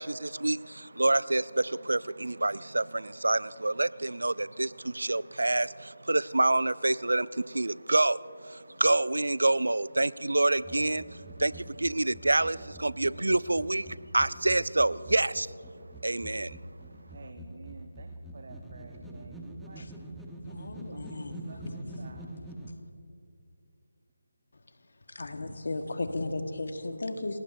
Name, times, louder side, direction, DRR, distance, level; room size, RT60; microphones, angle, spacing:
voice 1, 0.0-11.0 11.4-13.9 14.1-15.5 16.0-16.6, right 2 dB, 85° right, 0.4 m, -27 dB
sound 1, 10.6-22.7, right 1 dB, 5° right, 1.0 m, -45 dB
voice 2, 17.1-19.9 20.9-22.4, right 3 dB, 55° right, 1.1 m, -50 dB
voice 3, 20.4-21.9 25.1-27.4, left 2 dB, 65° left, 1.5 m, -35 dB
29.0 x 18.0 x 2.7 m
figure-of-eight pair, 160°, 0 cm